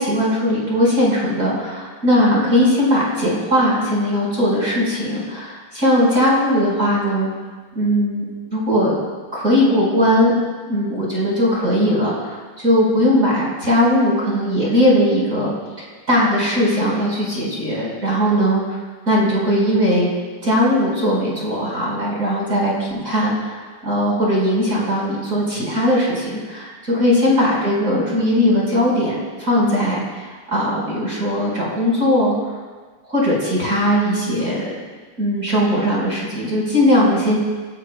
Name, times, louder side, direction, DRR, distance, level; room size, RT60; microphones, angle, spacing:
voice 1, 0.0-7.3 7.8-8.2 8.5-8.9 9.3-10.3 10.7-18.8 19.1-20.1 20.4-23.6 23.8-32.3 33.1-34.7 35.2-37.4, equal, 20° right, -6 dB, 5.6 m, -19 dB
27.5 x 18.5 x 2.4 m, 1.4 s
omnidirectional pair, 3.9 m